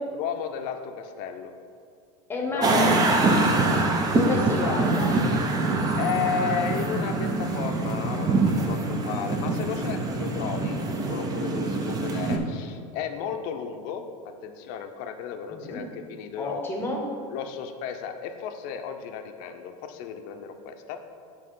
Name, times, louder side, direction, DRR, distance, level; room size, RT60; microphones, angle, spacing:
voice 1, 0.1-1.5 2.5-2.9 4.6-4.7 5.9-14.0 14.4-16.9 17.3-21.0, left 8 dB, 55° left, 6 dB, 0.6 m, -33 dB
voice 2, 2.3-3.7 4.0-5.1 15.5-15.8 16.4-17.1, left 2 dB, 15° left, 0 dB, 0.9 m, -31 dB
sound 1, 2.6-12.4, right 2 dB, 20° right, 0.5 m, -24 dB
8.7 x 3.0 x 5.4 m, 2.2 s
supercardioid pair, 155°, 17 cm